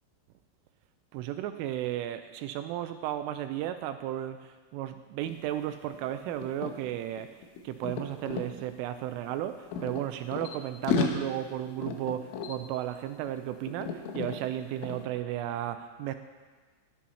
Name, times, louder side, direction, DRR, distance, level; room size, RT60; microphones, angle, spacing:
voice 1, 1.1-7.3 7.6-16.2, right 12 dB, 85° right, 9 dB, 2.9 m, -34 dB
sound 1, 5.3-5.4 5.7-8.5 9.3-10.6 10.8-13.4 13.7-14.4 14.8-15.1, left 5 dB, 80° left, 3.3 m, -34 dB
12.5 x 10.0 x 5.6 m, 1.4 s
omnidirectional pair, 5.9 m